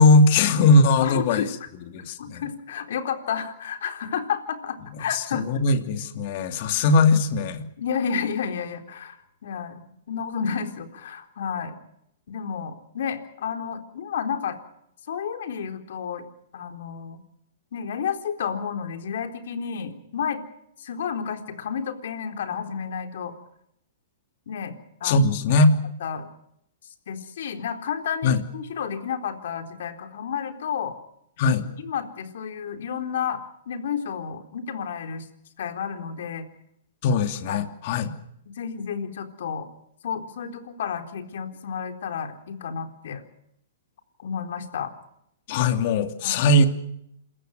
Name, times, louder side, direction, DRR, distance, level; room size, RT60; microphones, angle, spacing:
voice 1, 0.0-1.4 1.9-2.4 5.1-7.6 25.0-25.7 28.2-28.4 31.4-31.7 37.0-38.1 45.5-46.7, left 2 dB, 45° left, 7 dB, 2.8 m, -19 dB
voice 2, 1.0-1.5 2.2-5.5 7.8-11.8 12.3-14.6 15.1-16.3 16.5-17.2 17.7-20.4 20.8-23.3 24.5-25.3 26.0-26.3 26.8-31.0 31.8-35.3 35.6-36.5 37.5-37.7 38.5-39.7 40.0-43.2 44.2-44.9 46.2-46.5, left 7 dB, 70° left, 6 dB, 4.0 m, -31 dB
27.5 x 15.0 x 9.4 m, 0.76 s
hypercardioid pair, 150°, 0 cm